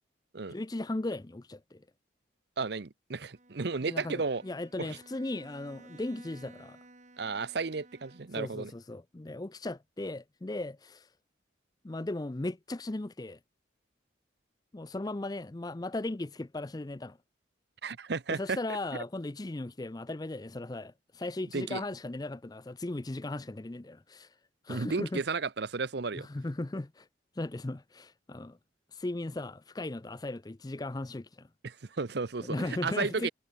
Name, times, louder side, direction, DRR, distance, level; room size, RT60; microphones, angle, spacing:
voice 1, 0.5-1.8 3.9-6.8 8.3-11.1 11.8-13.4 14.7-17.2 18.3-24.3 24.6-25.2 26.1-27.1 27.4-28.6 28.9-31.5 32.4-33.3, left 2 dB, 20° left, 0.5 m, -37 dB
voice 2, 2.6-4.4 4.8-4.9 7.2-8.7 17.8-18.6 18.9-19.0 21.5-21.8 24.7-26.3 31.6-33.3, right 4 dB, 55° right, 0.7 m, -33 dB
Bowed string instrument, 3.3-8.6, right 2 dB, 35° right, 2.8 m, -56 dB
head